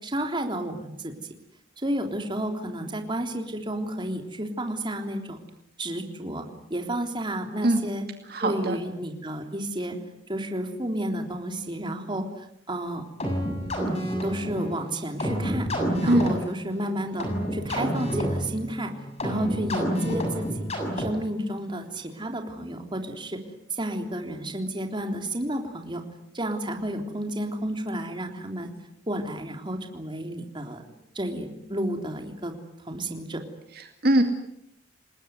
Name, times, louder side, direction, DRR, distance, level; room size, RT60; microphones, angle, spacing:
voice 1, 0.0-1.1 1.8-5.4 5.8-6.5 6.7-8.1 8.4-10.0 10.3-13.0 13.8-15.7 16.0-18.9 19.2-20.7 21.0-23.4 23.7-26.0 26.3-28.7 29.1-30.8 31.2-32.5 32.8-33.4, right 1 dB, 25° right, 4 dB, 3.6 m, -31 dB
voice 2, 8.3-8.8 16.1-16.3 33.7-34.2, right 1 dB, 55° right, 5 dB, 2.3 m, -22 dB
sound 1, 13.2-21.4, equal, 35° left, 7.2 m, -29 dB
29.0 x 20.0 x 9.6 m, 0.79 s
head